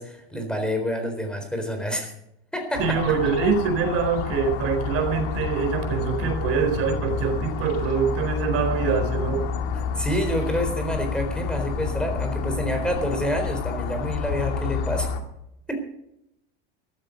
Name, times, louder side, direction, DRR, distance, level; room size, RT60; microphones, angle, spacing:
voice 1, 0.0-2.1 2.5-3.0 9.7-15.1 15.7-15.8, equal, 5° left, 5 dB, 4.0 m, -28 dB
sound 1, 2.7-15.2, left 6 dB, 75° left, 2.1 m, -29 dB
voice 2, 2.8-9.5, right 6 dB, 45° right, 5 dB, 4.4 m, -24 dB
14.5 x 13.5 x 5.3 m, 0.79 s
supercardioid pair, 135°, 32 cm